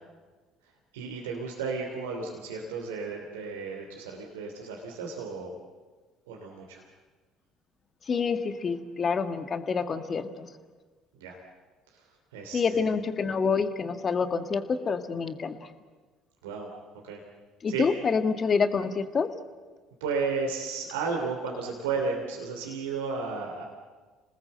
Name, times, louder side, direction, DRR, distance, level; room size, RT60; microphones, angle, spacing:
voice 1, 0.9-5.5 6.3-6.8 11.2-11.4 11.9-12.9 16.4-16.7 17.0-17.2 17.7-17.9 20.0-23.6, right 4 dB, 80° right, 0 dB, 3.0 m, -33 dB
voice 2, 8.1-10.5 12.5-15.7 17.6-19.3, left 5 dB, 40° left, 9 dB, 1.8 m, -27 dB
27.5 x 19.0 x 7.9 m, 1.4 s
hypercardioid pair, 60°, 0 cm